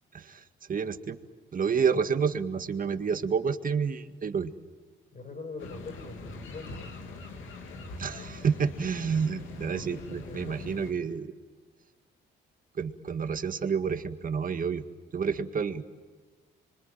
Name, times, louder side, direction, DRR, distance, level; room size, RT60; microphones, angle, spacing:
voice 1, 0.1-1.2 1.5-4.5 8.0-11.3 12.8-14.8 15.1-15.8, right 6 dB, 45° right, 8 dB, 1.9 m, -29 dB
voice 2, 5.1-6.9 9.7-10.7 11.0-11.2, left 3 dB, 40° left, 6 dB, 6.6 m, -43 dB
sound 1, 5.6-10.9, left 3 dB, 80° left, 3.3 m, -42 dB
26.0 x 24.5 x 9.2 m, 1.4 s
cardioid pair, 90°, 20 cm